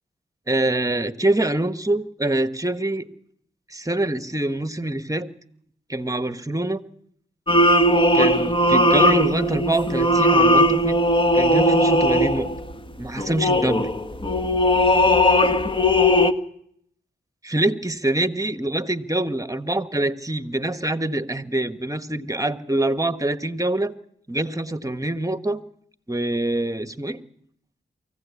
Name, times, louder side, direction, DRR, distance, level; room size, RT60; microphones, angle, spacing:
voice 1, 0.5-3.1 3.7-5.3 5.9-6.8 8.1-11.0 11.3-12.5 13.0-13.9 17.4-23.9 24.3-25.6 26.1-27.2, right 1 dB, 15° right, 11 dB, 1.4 m, -25 dB
sound 1, 7.5-12.7 13.2-16.3, left 1 dB, 25° left, 1.6 m, -18 dB
24.0 x 16.0 x 8.4 m, 0.68 s
cardioid pair, 45°, 20 cm